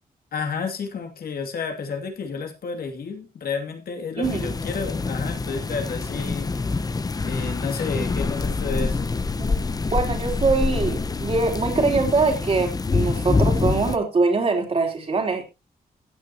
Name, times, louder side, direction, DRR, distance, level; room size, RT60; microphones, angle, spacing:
voice 1, 0.3-6.5 7.2-9.1, left 5 dB, 80° left, 4 dB, 2.6 m, -31 dB
sound 1, 4.2-14.0, left 4 dB, 25° left, 0.7 m, -26 dB
voice 2, 4.2-4.5 9.5-9.6 9.9-15.4, right 4 dB, 40° right, 3 dB, 3.3 m, -23 dB
15.5 x 9.3 x 2.9 m, 0.26 s
wide cardioid pair, 165°, 16 cm